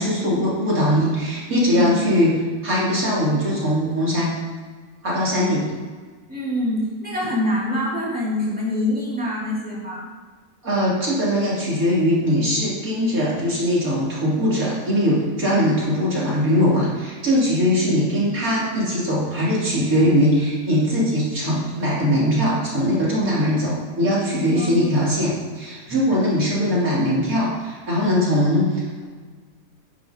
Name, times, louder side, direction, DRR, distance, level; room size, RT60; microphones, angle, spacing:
voice 1, 0.0-2.4 2.6-4.4 5.0-5.7 10.6-29.0, equal, 75° right, -7 dB, 3.6 m, -21 dB
voice 2, 6.3-10.1 24.6-24.8, left 1 dB, 5° right, -6 dB, 2.5 m, -25 dB
10.5 x 10.5 x 2.9 m, 1.5 s
omnidirectional pair, 1.5 m